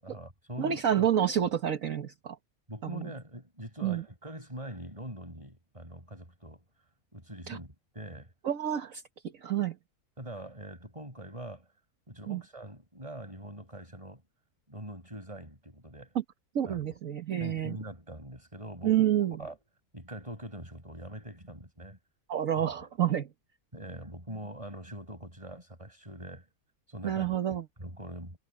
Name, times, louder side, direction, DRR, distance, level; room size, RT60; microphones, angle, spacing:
voice 1, 0.0-1.1 2.7-6.6 7.1-8.3 10.2-11.7 12.1-14.2 14.7-16.1 16.6-16.8 17.4-19.0 19.4-19.6 19.9-22.0 22.8-22.9 23.7-26.4 26.9-27.4 27.8-28.4, right 1 dB, 20° right, 6.6 m, -43 dB
voice 2, 0.6-2.4 2.8-3.1 3.8-4.0 7.5-7.6 8.4-9.0 9.4-9.7 12.3-12.4 16.5-17.8 18.8-19.4 22.3-23.3 27.0-27.6, right 10 dB, 65° right, 1.6 m, -28 dB
omnidirectional pair, 1.6 m